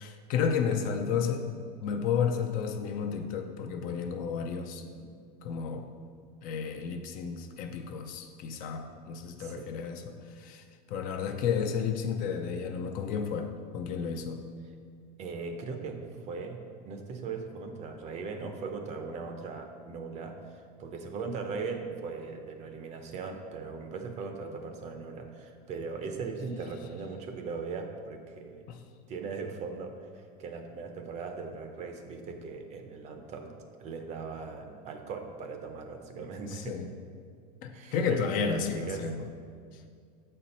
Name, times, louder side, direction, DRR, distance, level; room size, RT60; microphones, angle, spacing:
voice 1, 0.0-1.5 1.8-4.9 5.4-5.9 6.4-14.5 28.7-28.8 36.5-36.9 37.6-39.3, left 6 dB, 40° left, 6 dB, 0.5 m, -32 dB
voice 2, 9.4-9.8 15.2-28.6 29.1-33.5 33.8-36.8 37.7-39.1, right 4 dB, 35° right, 5 dB, 0.6 m, -39 dB
7.2 x 4.4 x 5.2 m, 2.1 s
supercardioid pair, 155°, 21 cm